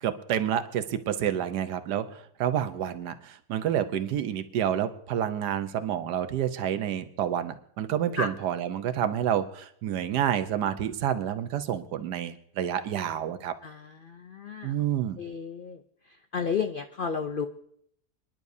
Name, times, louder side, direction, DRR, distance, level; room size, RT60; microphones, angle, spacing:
voice 1, 0.0-2.1 2.4-13.5 14.6-15.2, right 10 dB, 90° right, 10 dB, 1.4 m, -29 dB
voice 2, 13.6-14.7 15.2-15.8 16.3-17.5, left 6 dB, 85° left, 8 dB, 0.4 m, -32 dB
27.5 x 10.5 x 2.7 m, 0.68 s
omnidirectional pair, 1.7 m